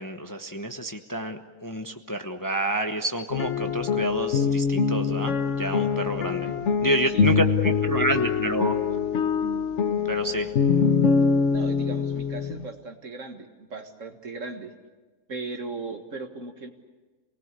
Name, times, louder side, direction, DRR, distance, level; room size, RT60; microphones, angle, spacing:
voice 1, 0.0-6.5 6.8-8.7 10.1-10.5, right 1 dB, 15° left, 5 dB, 1.0 m, -29 dB
sound 1, 3.3-12.6, left 5 dB, 60° left, 1.2 m, -24 dB
voice 2, 11.5-14.7 15.3-16.7, right 3 dB, 60° right, 5 dB, 2.1 m, -37 dB
28.0 x 19.5 x 8.3 m, 1.3 s
omnidirectional pair, 1.5 m